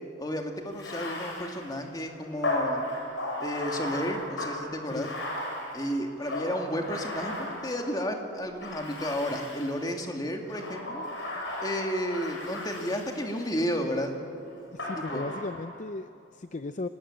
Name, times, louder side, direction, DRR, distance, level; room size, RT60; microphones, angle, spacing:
voice 1, 0.2-2.9 3.4-5.1 5.7-11.1 11.6-14.1 15.0-15.2, equal, 20° left, 3 dB, 2.3 m, -32 dB
Bathtub (filling or washing), 0.7-8.1 8.6-9.9 10.5-13.6 14.8-15.8, left 1 dB, 60° left, 6.9 m, -35 dB
voice 2, 14.7-16.9, left 2 dB, 35° left, 11 dB, 0.5 m, -36 dB
26.0 x 19.0 x 8.8 m, 2.6 s
head